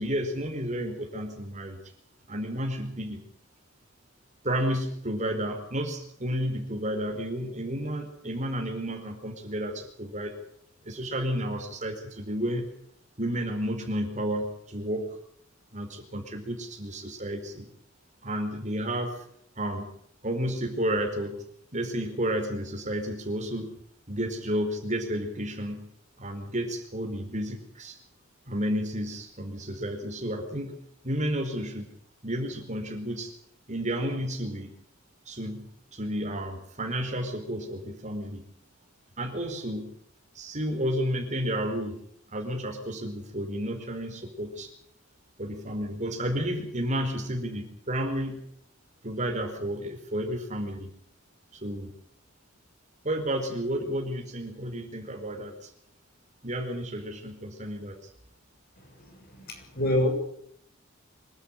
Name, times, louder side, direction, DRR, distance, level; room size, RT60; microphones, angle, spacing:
voice 1, 0.0-1.8 2.3-3.2 4.4-10.4 10.8-12.7 13.2-15.2 15.7-17.7 18.2-19.2 19.6-19.9 20.2-21.5 21.7-23.7 24.1-25.9 26.2-28.0 28.5-30.8 31.0-31.9 32.2-33.3 33.7-34.8 35.3-38.4 39.2-39.9 40.3-42.0 42.3-44.7 45.4-48.5 49.0-50.9 51.5-51.9 53.0-55.7 56.4-57.9, equal, 35° right, 3 dB, 4.6 m, -31 dB
voice 2, 58.8-60.1, left 1 dB, 50° left, 3 dB, 6.9 m, -28 dB
25.5 x 12.5 x 9.9 m, 0.70 s
head